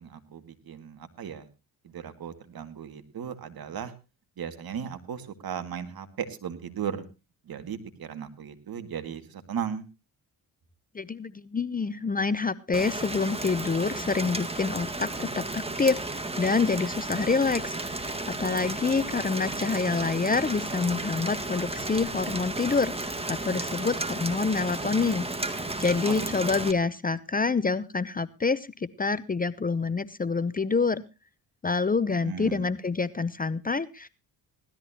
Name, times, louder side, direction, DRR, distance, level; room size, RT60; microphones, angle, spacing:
voice 1, 0.0-1.5 1.8-3.9 4.4-7.1 7.5-9.8 26.1-26.6 32.2-32.7, right 8 dB, 60° right, 9 dB, 2.2 m, -36 dB
voice 2, 10.9-16.0 16.4-18.1 18.4-31.0 31.6-34.1, left 4 dB, 20° left, 17 dB, 0.7 m, -27 dB
Rain, 12.7-26.7, right 2 dB, 15° right, 1.8 m, -33 dB
18.0 x 13.0 x 2.9 m, 0.29 s
cardioid pair, 75°, 41 cm